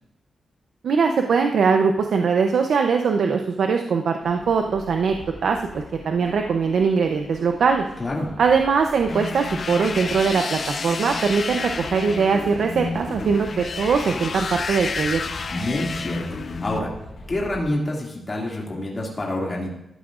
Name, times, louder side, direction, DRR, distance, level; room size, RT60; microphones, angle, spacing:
voice 1, 0.8-5.1 5.4-7.9 8.4-15.2, right 5 dB, 70° right, 4 dB, 0.6 m, -21 dB
sound 1, 4.2-17.7, left 2 dB, 60° left, 3.9 m, -42 dB
voice 2, 8.0-8.3 15.5-16.9 17.3-19.7, left 1 dB, 25° left, -3 dB, 2.3 m, -27 dB
sound 2, 9.1-16.8, left 4 dB, 45° left, 0.6 m, -30 dB
13.5 x 11.0 x 2.5 m, 0.86 s
wide cardioid pair, 130°, 0 cm